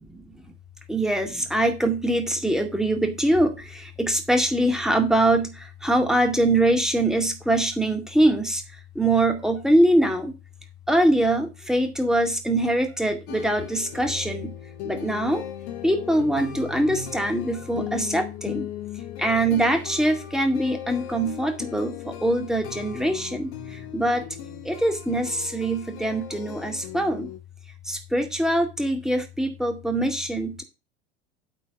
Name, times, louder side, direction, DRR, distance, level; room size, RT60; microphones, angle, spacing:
voice 1, 0.9-8.6 9.0-10.3 10.9-14.5 14.8-15.4 15.8-18.7 19.2-24.2 24.6-27.3 27.8-30.6, right 1 dB, ahead, 5 dB, 2.1 m, -23 dB
sound 1, 13.3-27.4, left 9 dB, 60° left, 1.9 m, -38 dB
8.4 x 4.5 x 6.9 m, 0.27 s
figure-of-eight pair, 75°, 33 cm